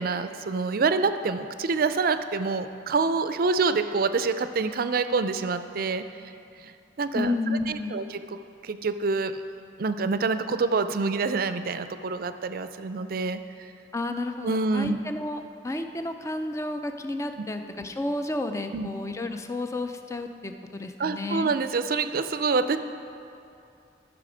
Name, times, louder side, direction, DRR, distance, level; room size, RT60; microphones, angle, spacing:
voice 1, 0.0-6.1 6.6-6.7 7.0-7.3 7.7-8.2 8.6-9.3 9.8-13.4 14.4-15.0 17.4-17.5 18.7-18.9 21.0-22.8, right 4 dB, 55° right, 10 dB, 0.4 m, -26 dB
voice 2, 7.1-8.0 13.9-21.5, left 2 dB, 15° left, 7 dB, 0.4 m, -31 dB
13.0 x 6.1 x 5.0 m, 2.6 s
head